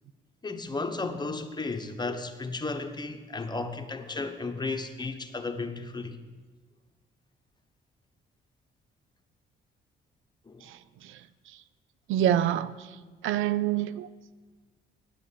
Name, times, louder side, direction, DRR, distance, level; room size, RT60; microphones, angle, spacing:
voice 1, 0.4-6.2 10.5-10.6, left 3 dB, 20° left, 1.0 m, -34 dB
voice 2, 10.6-11.2 12.1-13.0 13.2-14.1, right 11 dB, 80° right, 0.4 m, -27 dB
9.9 x 8.4 x 7.3 m
cardioid pair, 90°, 20 cm